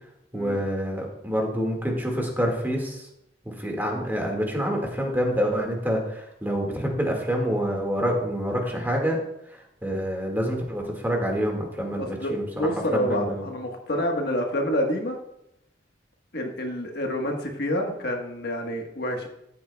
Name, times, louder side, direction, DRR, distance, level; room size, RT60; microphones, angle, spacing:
voice 1, 0.3-3.1 3.5-9.2 9.5-12.4 12.9-13.4, equal, 10° right, 1 dB, 1.9 m, -27 dB
voice 2, 12.0-15.2 16.3-19.3, equal, 60° left, 2 dB, 1.4 m, -28 dB
14.0 x 8.4 x 2.3 m, 0.81 s
head